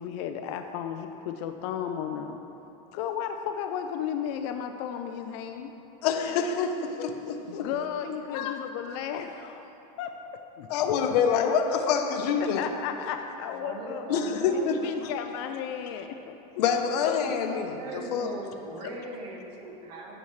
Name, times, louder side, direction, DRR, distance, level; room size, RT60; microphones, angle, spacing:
voice 1, 0.0-2.4 2.9-5.7 7.5-10.1 10.6-10.9 12.4-14.1 14.5-16.3 17.1-17.2 18.8-18.9, left 8 dB, 45° left, 6 dB, 0.4 m, -34 dB
voice 2, 6.0-7.7 8.3-8.5 10.7-12.7 14.1-15.1 16.6-18.3, left 6 dB, 70° left, 5 dB, 0.9 m, -27 dB
voice 3, 13.5-14.8 17.2-20.2, right 2 dB, 70° right, -1 dB, 1.7 m, -39 dB
15.5 x 7.0 x 3.2 m, 2.9 s
supercardioid pair, 180°, 21 cm